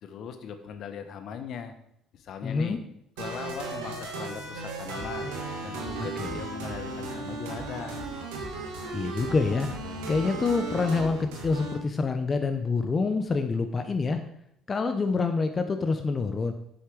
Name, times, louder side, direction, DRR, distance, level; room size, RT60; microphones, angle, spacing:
voice 1, 0.0-1.7 2.1-2.8 3.2-5.3 5.6-8.1, left 7 dB, 60° left, 8 dB, 1.1 m, -39 dB
voice 2, 2.4-2.8 6.2-6.4 8.9-9.7 10.1-14.2 14.7-16.5, left 4 dB, 35° left, 7 dB, 0.9 m, -26 dB
sound 1, 3.2-11.7, right 3 dB, 85° right, 1.7 m, -36 dB
8.1 x 6.6 x 4.9 m, 0.74 s
hypercardioid pair, 60°, 0 cm